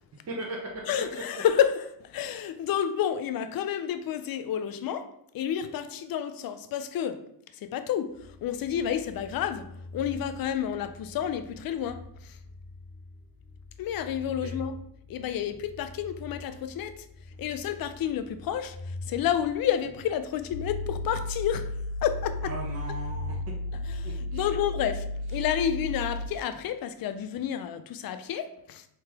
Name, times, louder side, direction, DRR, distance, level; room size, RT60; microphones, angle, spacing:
voice 1, 0.3-0.7 1.1-1.4 14.4-14.5 22.4-23.4 24.0-24.6 25.3-25.4, right 2 dB, 35° right, -2 dB, 0.8 m, -38 dB
voice 2, 0.9-5.1 5.3-7.2 7.7-8.1 8.4-9.6 9.9-12.3 13.8-14.8 15.1-16.9 17.4-21.7 22.0-22.5 23.9-25.0 25.3-28.8, left 9 dB, 55° left, 11 dB, 0.5 m, -30 dB
sound 1, 8.1-25.0, left 2 dB, 15° left, 1.1 m, -45 dB
sound 2, 20.5-26.3, left 1 dB, 40° left, 1.3 m, -34 dB
3.2 x 2.9 x 3.4 m, 0.72 s
cardioid pair, 75°, 42 cm